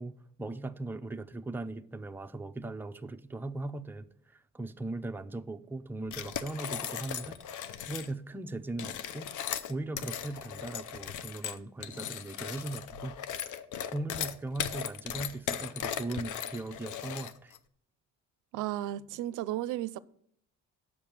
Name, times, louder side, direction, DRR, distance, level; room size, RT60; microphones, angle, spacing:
voice 1, 0.0-9.3 9.7-13.2 13.4-13.6 13.9-17.5, right 2 dB, 5° right, 0.5 m, -39 dB
sound 1, 6.1-8.1 8.7-17.6, left 9 dB, 75° left, 0.7 m, -37 dB
voice 2, 18.5-20.0, right 14 dB, 85° right, 0.5 m, -34 dB
7.0 x 5.1 x 7.2 m
cardioid pair, 90°, 30 cm